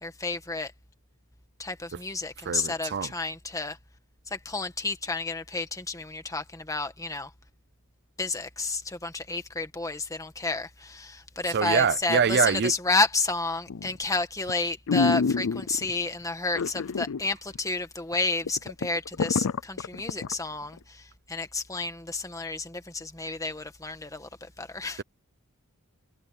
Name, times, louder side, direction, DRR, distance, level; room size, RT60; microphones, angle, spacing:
voice 1, 0.0-0.7 1.6-3.8 4.3-7.3 8.2-25.0, left 3 dB, 15° left, 1.7 m, -31 dB
voice 2, 2.4-3.1 11.4-12.8, right 6 dB, 50° right, 0.5 m, -25 dB
sound 1, 13.7-14.0 14.5-14.6 14.9-15.9 16.5-17.2 17.5-17.6 18.1-18.2 18.5-20.3 20.8-20.9, left 5 dB, 65° left, 0.5 m, -27 dB
head